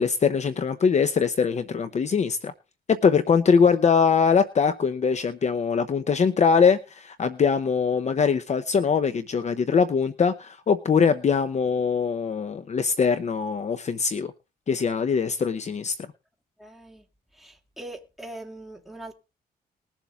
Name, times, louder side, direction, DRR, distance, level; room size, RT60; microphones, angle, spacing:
voice 1, 0.0-2.5 2.9-14.3 14.7-15.9, left 6 dB, 45° left, 0.8 m, -22 dB
voice 2, 16.6-17.1 17.3-19.1, right 1 dB, ahead, 2.5 m, -41 dB
20.5 x 7.2 x 3.6 m
cardioid pair, 115°, 17 cm